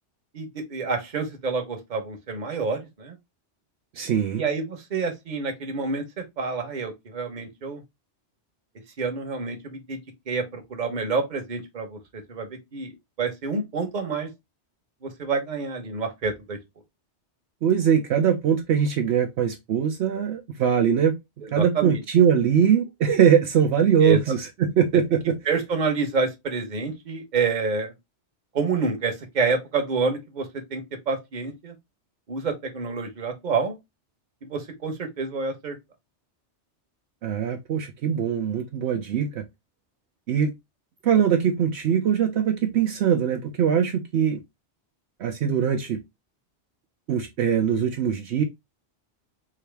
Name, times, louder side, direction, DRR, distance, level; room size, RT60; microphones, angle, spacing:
voice 1, 0.3-3.1 4.3-7.8 9.0-10.0 10.3-14.3 15.0-16.6 21.4-22.0 24.0-24.2 25.5-27.9 28.5-31.7 32.3-33.7 34.4-35.8, right 4 dB, 45° right, 1.0 m, -28 dB
voice 2, 4.0-4.4 17.6-21.2 21.5-25.4 37.2-39.4 40.3-40.5 41.0-44.4 45.2-46.0 47.1-48.4, right 8 dB, 70° right, 0.9 m, -22 dB
3.8 x 2.8 x 3.3 m
omnidirectional pair, 1.2 m